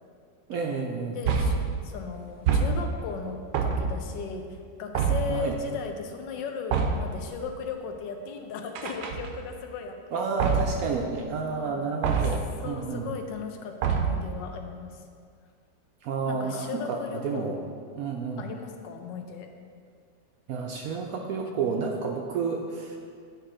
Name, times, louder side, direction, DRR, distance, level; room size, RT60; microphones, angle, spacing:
voice 1, 0.5-1.2 5.3-5.6 10.1-13.1 16.0-17.6 18.0-18.4 20.5-23.0, right 5 dB, 70° right, 1 dB, 0.8 m, -30 dB
voice 2, 1.1-1.6 1.8-10.2 11.4-11.9 12.2-12.3 12.6-15.0 16.2-17.7 18.4-19.5, left 5 dB, 85° left, 5 dB, 1.3 m, -37 dB
sound 1, 1.3-1.8 2.5-3.1 3.5-4.2 5.0-5.5 6.7-7.2 8.8-9.6 10.4-10.9 12.0-12.6 13.8-14.4, right 5 dB, 85° right, 1.3 m, -26 dB
9.4 x 3.3 x 4.8 m, 2.2 s
omnidirectional pair, 1.9 m